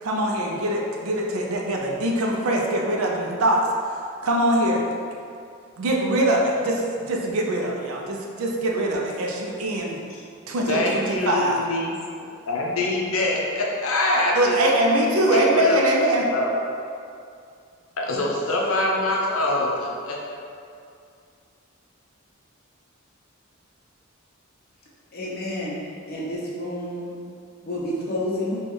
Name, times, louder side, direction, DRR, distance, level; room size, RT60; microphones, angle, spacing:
voice 1, 0.0-4.8 5.8-10.0 10.5-11.6 14.3-16.3, right 1 dB, 90° right, -1 dB, 0.5 m, -23 dB
voice 2, 10.7-11.9 12.5-14.6 15.3-15.8 16.3-16.5 18.0-20.2, left 2 dB, 80° left, -2 dB, 0.6 m, -24 dB
voice 3, 25.1-25.8 26.1-27.1 27.6-28.6, left 1 dB, 50° left, -5 dB, 0.7 m, -29 dB
4.1 x 2.3 x 3.2 m, 2.4 s
head